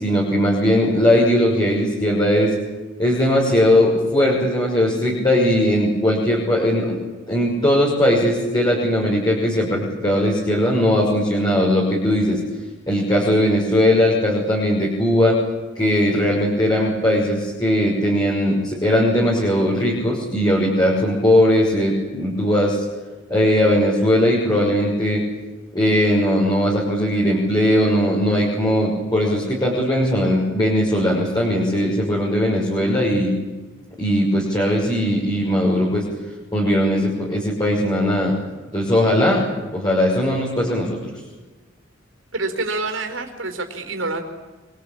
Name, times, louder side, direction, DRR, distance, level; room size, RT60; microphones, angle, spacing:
voice 1, 0.0-2.5 3.0-7.0 7.3-12.4 12.9-15.4 15.7-22.8 23.3-25.2 25.7-33.3 34.0-36.0 36.5-38.3 38.7-41.0, equal, 20° left, -4 dB, 6.0 m, -19 dB
voice 2, 42.3-44.2, right 3 dB, 75° right, 5 dB, 4.6 m, -27 dB
27.5 x 23.5 x 8.9 m, 1.2 s
head